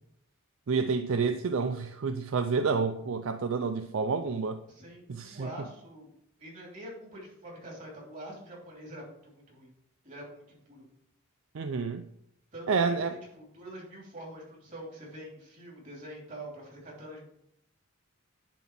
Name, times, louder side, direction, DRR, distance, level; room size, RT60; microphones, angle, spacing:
voice 1, 0.7-4.6 5.1-5.5 11.5-12.0 12.7-13.1, right 5 dB, 60° right, 9 dB, 0.4 m, -29 dB
voice 2, 4.7-6.1 6.4-9.7 10.0-10.8 12.5-17.3, right 1 dB, 35° right, -3 dB, 3.1 m, -45 dB
10.5 x 4.0 x 6.0 m, 0.79 s
head